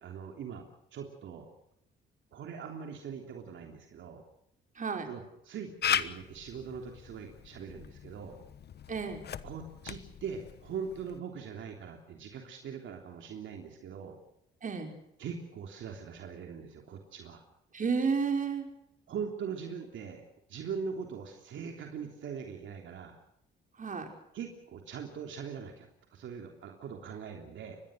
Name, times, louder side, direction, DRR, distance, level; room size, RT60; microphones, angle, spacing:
voice 1, 0.0-1.5 2.3-4.2 5.0-8.4 9.4-14.2 15.2-17.4 19.1-20.2 20.5-23.2 24.3-27.8, right 6 dB, 75° right, 3 dB, 3.3 m, -41 dB
voice 2, 4.8-5.1 8.9-9.3 14.6-14.9 17.7-18.7 23.8-24.1, right 5 dB, 40° right, 4 dB, 5.4 m, -31 dB
Camera, 5.8-11.2, left 9 dB, 55° left, 1.2 m, -38 dB
25.0 x 21.0 x 6.5 m, 0.75 s
cardioid pair, 90°, 20 cm